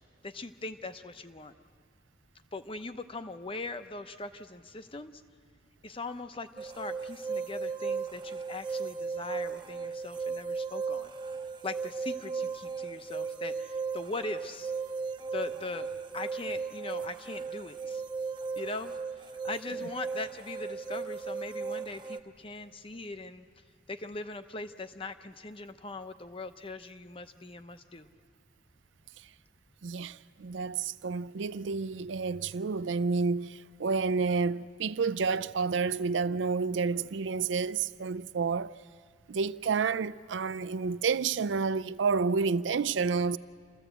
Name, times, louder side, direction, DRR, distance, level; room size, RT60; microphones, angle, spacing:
voice 1, 0.2-1.5 2.5-5.2 5.8-11.1 11.6-14.7 15.3-18.0 18.6-18.9 19.4-23.5 23.9-28.1, left 3 dB, 30° left, 0.7 m, -40 dB
sound 1, 6.6-22.2, right 5 dB, 25° right, 0.7 m, -36 dB
voice 2, 29.8-38.7 39.3-43.4, right 5 dB, 80° right, 0.5 m, -30 dB
27.5 x 14.5 x 8.0 m
head